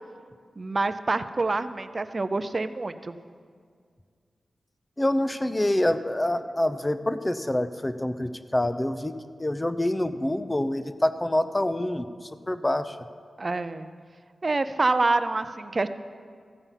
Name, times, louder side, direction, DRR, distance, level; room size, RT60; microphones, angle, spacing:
voice 1, 0.6-3.2 13.4-13.9 14.4-15.9, right 3 dB, 40° right, 11 dB, 0.5 m, -26 dB
voice 2, 5.0-13.0, left 1 dB, 20° left, 11 dB, 0.6 m, -26 dB
14.5 x 5.5 x 7.3 m, 2.1 s
wide cardioid pair, 75°, 0 cm